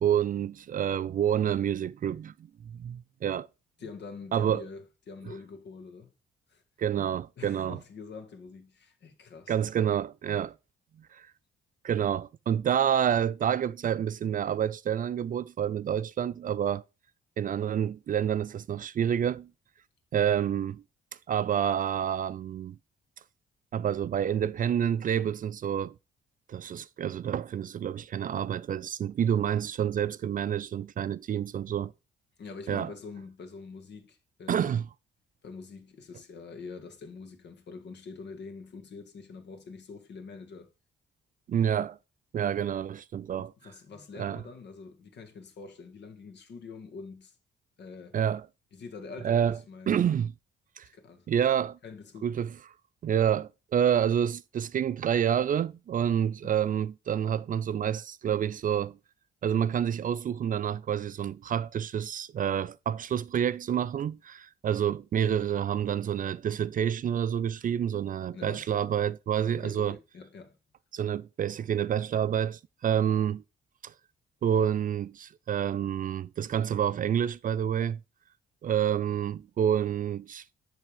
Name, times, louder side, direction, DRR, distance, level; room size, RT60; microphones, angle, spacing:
voice 1, 0.0-2.3 2.6-3.5 4.3-4.6 6.8-7.8 9.5-10.6 11.1-11.3 11.8-16.8 17.4-19.5 20.1-20.8 21.3-22.8 23.7-25.9 26.5-31.9 32.7-32.9 34.5-34.8 41.5-42.0 42.3-43.5 44.2-44.4 48.1-48.5 49.2-49.6 49.9-50.3 50.8-50.9 51.3-51.8 52.2-52.5 53.0-59.0 59.4-70.0 70.9-73.4 73.8-73.9 74.4-78.0 78.6-80.4, right 9 dB, 45° right, 0.4 m, -28 dB
voice 2, 3.8-6.1 6.5-6.6 7.4-9.5 32.4-34.7 35.4-40.7 43.6-47.4 47.8-48.2 48.7-50.1 50.9-51.3 51.8-52.3 56.4-56.6 68.3-68.7 69.5-70.6, left 4 dB, 60° left, 1.7 m, -45 dB
10.5 x 3.5 x 4.9 m
cardioid pair, 90°, 20 cm